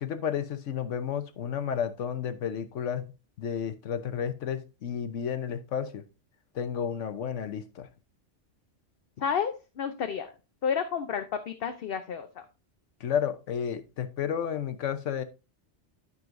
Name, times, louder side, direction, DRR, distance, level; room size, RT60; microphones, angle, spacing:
voice 1, 0.0-3.0 3.4-6.0 6.5-7.9 13.0-15.2, left 8 dB, 85° left, 10 dB, 1.2 m, -32 dB
voice 2, 9.2-10.3 10.6-12.3, left 7 dB, 55° left, 7 dB, 0.9 m, -31 dB
12.0 x 5.5 x 2.6 m, 0.29 s
omnidirectional pair, 1.2 m